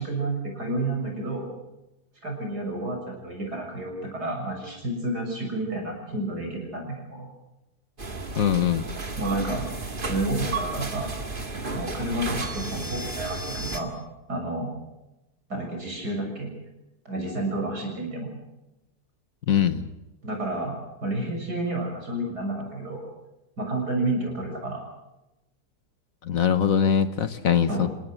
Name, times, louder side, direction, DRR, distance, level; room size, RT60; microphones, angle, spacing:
voice 1, 0.0-1.5 2.2-7.3 9.2-9.7 10.1-11.1 11.7-13.9 14.3-14.7 15.5-16.5 17.1-18.3 20.2-23.1 23.6-24.8 27.7-27.9, right 2 dB, 70° right, 2 dB, 7.4 m, -30 dB
sound 1, 8.0-13.8, right 3 dB, 30° right, 2.2 m, -32 dB
voice 2, 8.4-8.9 19.5-19.9 26.2-27.9, left 8 dB, 60° left, 12 dB, 1.4 m, -22 dB
28.5 x 18.0 x 6.4 m, 0.98 s
omnidirectional pair, 1.8 m